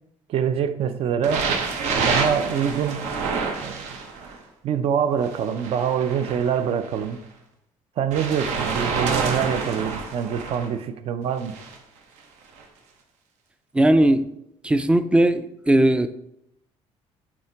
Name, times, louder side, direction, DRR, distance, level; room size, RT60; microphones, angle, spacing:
voice 1, 0.3-1.5 1.9-3.1 3.6-3.9 4.6-7.2 8.0-11.6, right 8 dB, 55° right, 10 dB, 0.6 m, -25 dB
sound 1, 1.2-4.4 5.2-7.1 8.1-10.7 11.4-11.8 12.6-12.7, right 4 dB, 80° right, 1.1 m, -28 dB
voice 2, 13.7-14.3 14.6-16.1, right 1 dB, 10° right, 11 dB, 0.4 m, -18 dB
8.5 x 2.9 x 4.5 m, 0.79 s
cardioid pair, 135°, 12 cm